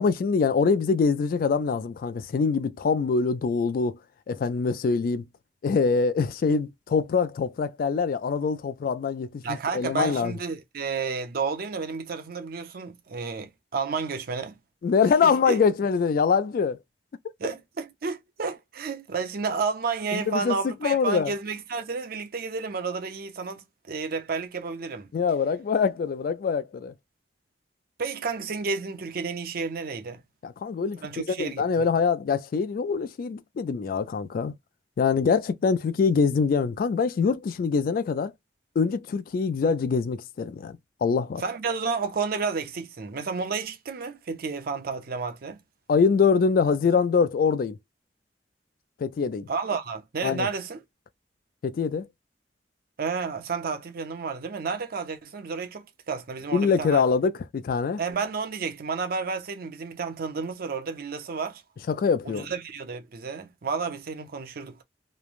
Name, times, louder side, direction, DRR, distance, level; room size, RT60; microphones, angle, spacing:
voice 1, 0.0-4.0 4.3-5.2 5.6-10.3 14.8-16.8 20.1-21.3 25.1-26.9 30.4-34.5 35.0-38.3 38.8-41.4 45.9-47.8 49.0-49.5 50.2-50.5 51.6-52.1 56.5-58.0 61.9-62.5, left 5 dB, 55° left, 0.3 m, -24 dB
voice 2, 9.4-14.5 15.2-15.6 17.4-25.1 28.0-30.2 31.0-31.7 41.4-45.6 49.5-50.8 53.0-57.0 58.0-61.6 62.3-64.8, right 5 dB, 55° right, 0.6 m, -31 dB
3.1 x 2.1 x 2.4 m
head